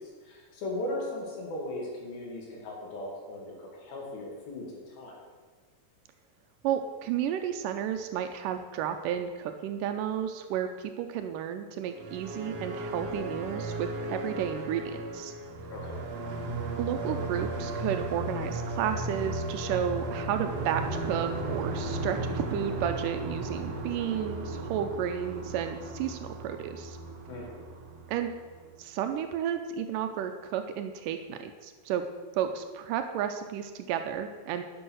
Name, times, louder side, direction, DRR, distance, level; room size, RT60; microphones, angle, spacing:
voice 1, 0.0-5.2 15.7-16.1 27.3-27.7, left 1 dB, 85° left, -2 dB, 4.2 m, -38 dB
voice 2, 6.6-15.3 16.8-27.0 28.1-28.3 28.8-32.1 32.4-34.6, right 9 dB, 80° right, 7 dB, 2.0 m, -32 dB
sound 1, 11.9-28.7, right 2 dB, 65° right, 1.6 m, -35 dB
10.5 x 6.4 x 6.3 m, 1.4 s
omnidirectional pair, 4.1 m